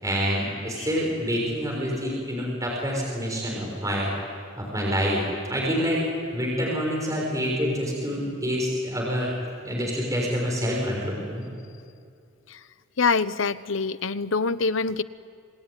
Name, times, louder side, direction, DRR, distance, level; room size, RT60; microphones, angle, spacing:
voice 1, 0.0-4.1 4.6-5.2 5.5-6.0 6.3-9.3 9.6-11.5, equal, 15° right, -3 dB, 6.3 m, -27 dB
voice 2, 13.0-15.0, left 4 dB, 80° left, 14 dB, 0.9 m, -25 dB
27.0 x 21.5 x 9.8 m, 2.3 s
head